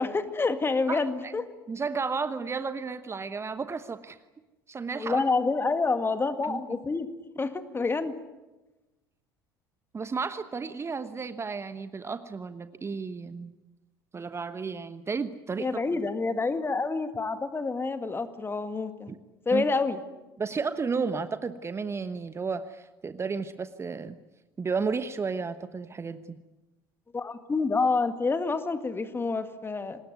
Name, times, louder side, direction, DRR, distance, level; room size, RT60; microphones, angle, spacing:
voice 1, 0.0-1.4 5.0-7.1 7.4-8.2 15.6-19.1 19.5-20.0 27.1-30.0, left 3 dB, 20° left, 10 dB, 2.0 m, -28 dB
voice 2, 0.9-1.4 1.7-4.2 4.7-5.2 6.4-6.8 9.9-13.5 14.1-15.7 19.1-19.2 19.5-19.6 20.4-24.2 24.6-26.4, right 5 dB, 20° right, 12 dB, 1.1 m, -33 dB
25.5 x 20.0 x 9.3 m, 1.1 s
figure-of-eight pair, 65°, 12 cm